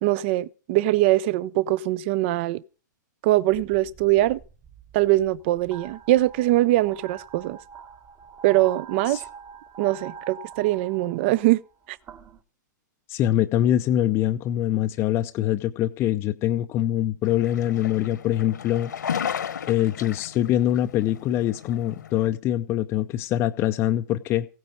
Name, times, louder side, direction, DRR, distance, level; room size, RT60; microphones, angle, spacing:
voice 1, 0.0-2.6 3.2-4.4 4.9-7.6 8.4-9.2 9.8-11.6 11.9-12.0, right 16 dB, 35° right, 0.6 m, -22 dB
sound 1, 3.5-12.4, right 7 dB, 20° right, 1.1 m, -44 dB
voice 2, 13.1-18.9 19.7-24.5, left 12 dB, 25° left, 0.6 m, -24 dB
sound 2, 17.2-22.3, left 8 dB, 70° left, 1.3 m, -34 dB
15.5 x 9.3 x 5.2 m
figure-of-eight pair, 125°, 10 cm